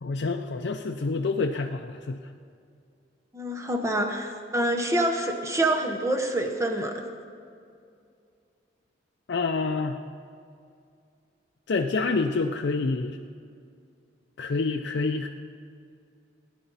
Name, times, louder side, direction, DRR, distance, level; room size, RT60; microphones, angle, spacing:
voice 1, 0.0-2.2 9.3-10.0 11.7-13.2 14.4-15.3, left 3 dB, 65° left, 3 dB, 0.4 m, -27 dB
voice 2, 3.3-7.0, right 1 dB, 15° right, 3 dB, 0.9 m, -26 dB
17.5 x 10.0 x 4.1 m, 2.4 s
head